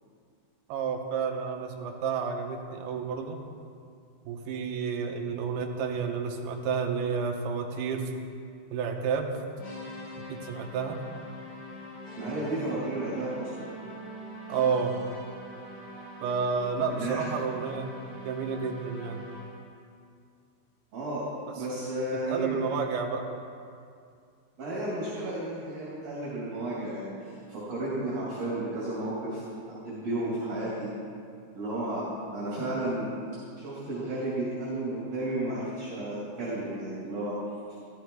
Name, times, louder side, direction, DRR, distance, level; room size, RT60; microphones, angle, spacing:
voice 1, 0.7-3.4 4.3-8.1 8.7-9.4 10.3-11.0 14.5-14.9 16.2-19.2 21.5-21.6 22.3-23.3, right 5 dB, 75° right, 2 dB, 2.9 m, -30 dB
sound 1, 9.6-19.7, equal, 45° left, 4.2 m, -43 dB
voice 2, 12.2-13.7 16.9-17.2 20.9-21.3 21.6-22.6 24.6-29.4 29.7-30.9 31.5-32.1 32.3-33.1 33.6-37.4, right 1 dB, 40° right, -7 dB, 3.6 m, -33 dB
14.5 x 13.0 x 4.8 m, 2.3 s
omnidirectional pair, 4.9 m